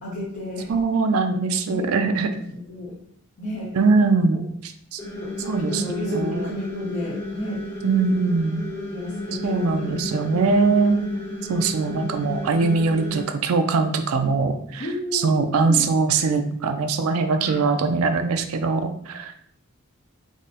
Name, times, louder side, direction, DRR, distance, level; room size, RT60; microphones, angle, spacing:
voice 1, 0.0-0.7 1.7-1.9 2.3-2.9 3.4-3.7 4.3-4.4 5.2-7.6 8.9-10.1 10.5-10.9 14.8-15.9 17.4-17.7, left 1 dB, 55° left, -7 dB, 0.9 m, -32 dB
voice 2, 0.7-2.3 3.7-5.0 5.5-6.5 7.8-8.6 9.4-11.0 11.5-14.9 15.1-19.3, right 4 dB, 75° right, 7 dB, 0.4 m, -22 dB
sound 1, 5.0-13.2, left 1 dB, 10° left, 0.8 m, -33 dB
3.6 x 2.1 x 4.0 m, 0.68 s
head